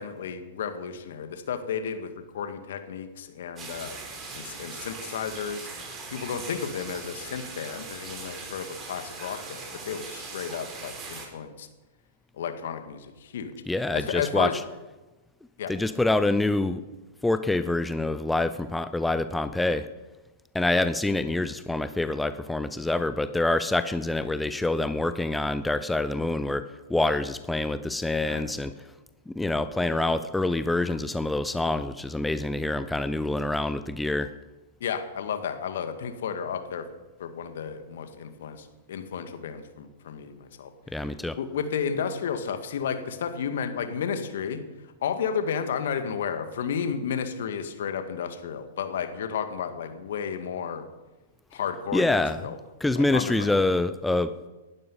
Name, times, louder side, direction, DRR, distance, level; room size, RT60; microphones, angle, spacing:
voice 1, 0.0-4.0 4.3-5.7 6.1-11.7 12.3-13.5 13.9-14.5 15.6-15.7 28.2-28.7 34.8-36.9 37.2-40.7 41.4-44.6 45.0-50.9 51.5-52.6 52.9-53.5, left 7 dB, 65° left, 8 dB, 2.0 m, -32 dB
sound 1, 3.6-11.3, right 4 dB, 25° right, 4.8 m, -40 dB
voice 2, 13.7-14.5 15.7-16.8 17.2-19.9 20.5-28.7 29.3-34.3 40.9-41.4 51.9-52.4 52.8-54.5, left 2 dB, 5° left, 12 dB, 0.7 m, -26 dB
19.0 x 12.0 x 5.6 m, 1.1 s
figure-of-eight pair, 105°, 0 cm